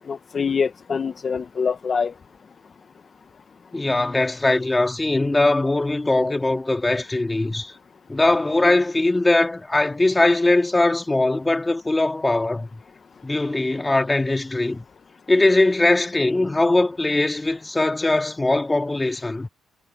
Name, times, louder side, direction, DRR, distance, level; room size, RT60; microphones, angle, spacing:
voice 1, 0.1-2.1, left 5 dB, 40° left, 1.1 m, -24 dB
voice 2, 3.7-7.7 8.1-12.8 13.2-14.8 15.3-19.5, left 2 dB, 15° left, 2.8 m, -21 dB
cardioid pair, 90°, 0 cm